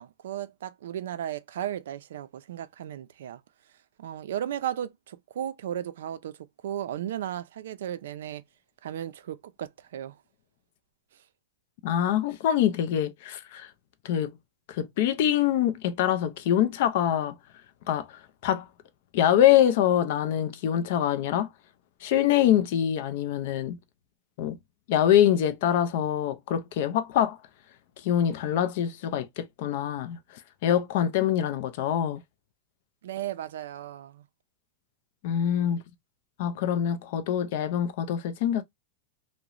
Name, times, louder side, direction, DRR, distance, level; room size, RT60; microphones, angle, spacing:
voice 1, 0.0-3.4 4.0-8.4 8.8-10.2 33.0-34.2, right 11 dB, 75° right, 0.3 m, -35 dB
voice 2, 11.8-13.7 14.0-14.3 14.7-17.4 17.9-18.7 19.1-21.5 22.0-23.8 24.4-24.6 24.9-27.4 28.0-30.2 30.6-32.2 35.2-35.8 36.4-38.6, left 10 dB, 45° left, 0.4 m, -24 dB
2.8 x 2.0 x 2.4 m
supercardioid pair, 175°, 0 cm